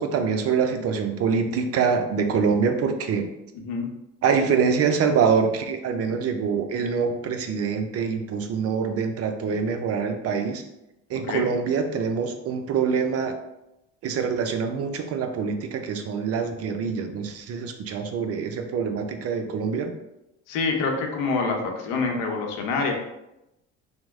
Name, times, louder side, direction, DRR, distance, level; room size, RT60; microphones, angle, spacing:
voice 1, 0.0-3.3 4.2-10.6 11.1-13.3 14.0-19.9, right 6 dB, 45° right, 6 dB, 0.5 m, -25 dB
voice 2, 3.5-3.9 11.3-11.5 20.5-22.9, left 4 dB, 65° left, 2 dB, 0.8 m, -26 dB
2.9 x 2.1 x 3.5 m, 0.89 s
hypercardioid pair, 65°, 35 cm